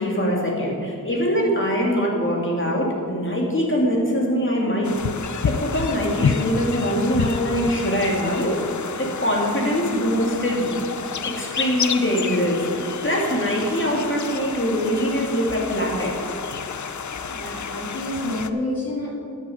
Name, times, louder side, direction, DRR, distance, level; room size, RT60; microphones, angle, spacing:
voice 1, 0.0-5.0 5.4-8.6 8.9-10.8 11.2-16.1, equal, 35° left, -2 dB, 2.5 m, -23 dB
sound 1, 4.8-18.5, left 6 dB, 60° left, 0.6 m, -30 dB
voice 2, 17.3-19.1, left 1 dB, 90° left, -3 dB, 2.5 m, -28 dB
13.0 x 7.6 x 5.0 m, 2.5 s
wide cardioid pair, 55°, 34 cm